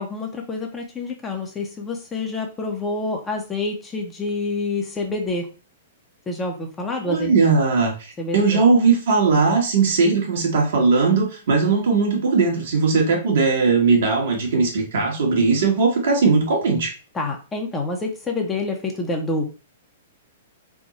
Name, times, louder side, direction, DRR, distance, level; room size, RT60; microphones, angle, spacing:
voice 1, 0.0-5.5 6.3-7.3 8.2-8.6 17.1-19.5, left 3 dB, 15° left, 2 dB, 1.0 m, -27 dB
voice 2, 7.1-16.9, right 4 dB, 65° right, 1 dB, 1.4 m, -19 dB
3.5 x 2.3 x 4.1 m, 0.34 s
hypercardioid pair, 115°, 0 cm